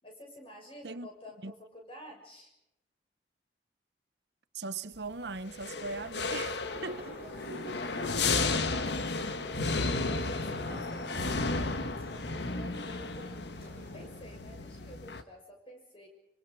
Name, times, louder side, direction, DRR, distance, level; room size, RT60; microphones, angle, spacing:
voice 1, 0.0-2.5 9.5-13.4 13.9-16.1, equal, 30° left, 6.4 m, -49 dB
voice 2, 4.5-7.2 8.5-8.9 10.7-10.8, right 3 dB, 70° right, 0.9 m, -40 dB
sound 1, 5.5-15.2, left 3 dB, 70° left, 1.4 m, -33 dB
sound 2, 6.6-14.1, equal, 50° left, 7.4 m, -46 dB
25.5 x 25.0 x 4.8 m
head